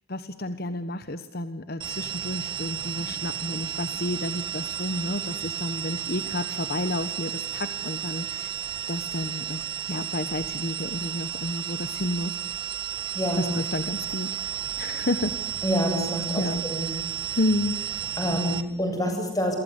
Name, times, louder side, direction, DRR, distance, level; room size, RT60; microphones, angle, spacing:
voice 1, 0.1-12.4 13.3-14.4 14.8-15.4 16.4-16.6 17.4-17.8, left 1 dB, 50° left, 11 dB, 1.2 m, -31 dB
sound 1, 1.8-18.6, right 10 dB, 25° right, 2.0 m, -33 dB
voice 2, 15.6-16.9 18.2-19.6, equal, 20° left, 4 dB, 7.9 m, -27 dB
28.5 x 24.0 x 8.3 m, 0.77 s
head